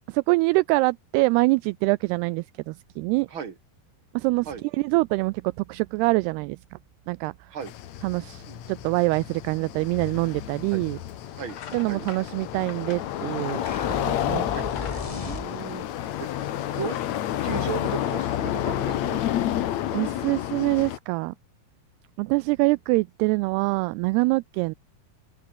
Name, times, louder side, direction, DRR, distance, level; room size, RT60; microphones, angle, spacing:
voice 1, 0.1-3.3 4.1-4.5 4.7-6.6 7.1-7.3 8.0-11.0 11.7-13.6 14.0-14.5 19.9-21.3 22.2-24.7, right 24 dB, 85° right, 2.3 m, -24 dB
sound 1, 7.6-21.0, left 12 dB, 75° left, 1.6 m, -30 dB
sound 2, 10.8-11.1 11.4-14.1 14.5-16.2, left 8 dB, 45° left, 2.7 m, -45 dB
sound 3, 13.7-15.9, left 2 dB, 10° left, 2.0 m, -36 dB
voice 2, 15.2-16.5 16.7-17.0 17.4-19.2, right 6 dB, 30° right, 3.3 m, -36 dB
open air
omnidirectional pair, 5.1 m